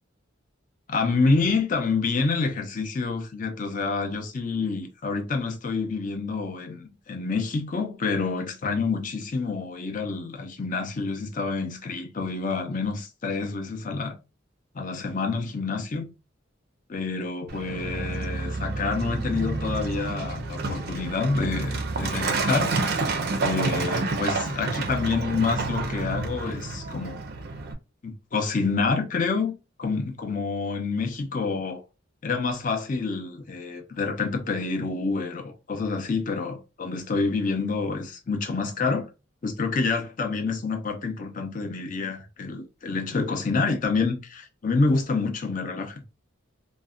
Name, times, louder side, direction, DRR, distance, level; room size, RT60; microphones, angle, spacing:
voice 1, 0.9-14.2 14.7-16.1 16.9-22.7 23.4-27.2 28.0-29.5 29.8-31.8 32.2-39.1 39.4-46.0, left 4 dB, 40° left, 0.5 m, -28 dB
Truck, 17.5-27.7, right 3 dB, 50° right, 0.4 m, -29 dB
sound 1, 19.3-23.6 24.1-24.3 25.1-25.6, right 1 dB, 75° left, 1.1 m, -41 dB
2.5 x 2.1 x 2.4 m
head